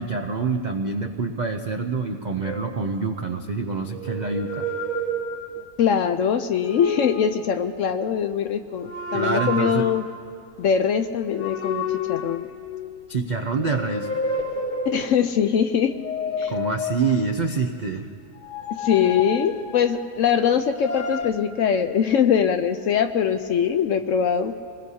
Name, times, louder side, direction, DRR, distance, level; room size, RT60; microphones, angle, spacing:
voice 1, 0.0-4.7 9.1-9.9 13.1-14.1 16.5-18.1, right 4 dB, 65° right, 4 dB, 0.4 m, -26 dB
sound 1, 2.4-3.4 3.9-5.9 6.5-7.5 8.8-10.2 11.4-13.1 13.6-15.3 15.9-17.5 18.3-20.2 20.7-21.3, left 2 dB, 35° left, 0.9 m, -30 dB
voice 2, 5.6-10.0 10.6-12.5 14.9-15.9 16.4-16.5 18.7-24.5, left 8 dB, 65° left, 9 dB, 0.8 m, -22 dB
25.5 x 20.5 x 2.8 m, 2.3 s
omnidirectional pair, 1.7 m